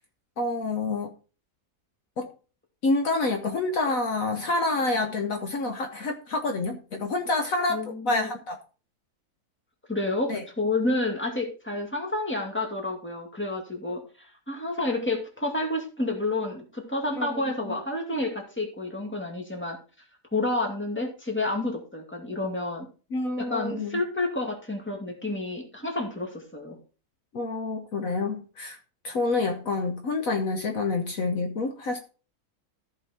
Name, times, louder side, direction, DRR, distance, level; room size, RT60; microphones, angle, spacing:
voice 1, 0.4-1.1 2.2-2.3 2.8-7.8 8.0-8.6 10.3-10.4 17.2-17.8 23.1-24.0 27.3-28.8 29.0-32.0, left 3 dB, 60° left, 4 dB, 1.4 m, -28 dB
voice 2, 7.7-8.3 9.9-10.3 10.6-19.8 20.3-22.9 23.4-26.8, left 2 dB, 5° left, 1 dB, 2.3 m, -29 dB
14.5 x 5.5 x 4.3 m, 0.35 s
omnidirectional pair, 1.7 m